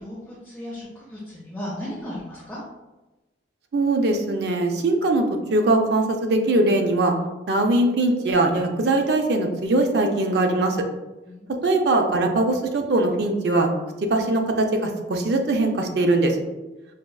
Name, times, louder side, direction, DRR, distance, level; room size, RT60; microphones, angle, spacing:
voice 1, 0.0-2.6 11.2-11.9, left 1 dB, 10° left, -8 dB, 0.7 m, -36 dB
voice 2, 3.7-5.2 5.5-7.1 7.5-10.8 11.6-13.7 14.1-16.4, right 2 dB, 55° right, 3 dB, 0.4 m, -21 dB
4.8 x 2.3 x 2.3 m, 1.1 s
head